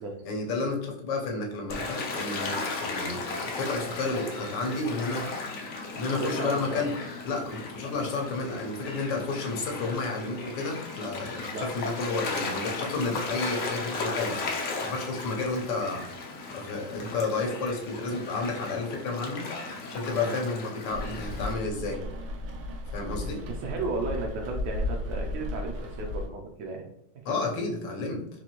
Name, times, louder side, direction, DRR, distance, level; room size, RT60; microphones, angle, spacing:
voice 1, 0.2-5.3 5.9-6.9 7.2-16.0 16.5-19.4 19.9-22.0 22.9-23.4 27.3-28.2, left 3 dB, 80° left, 1 dB, 1.4 m, -31 dB
Gull seagull / Waves surf, 1.7-21.5, left 3 dB, 60° left, 0.9 m, -36 dB
voice 2, 6.2-6.9 11.5-11.7 20.2-20.4 23.5-26.9, right 3 dB, 70° right, 0 dB, 1.0 m, -34 dB
Rain, 20.9-26.3, left 1 dB, 85° right, 1.4 m, -34 dB
4.2 x 2.6 x 2.9 m, 0.78 s
omnidirectional pair, 2.0 m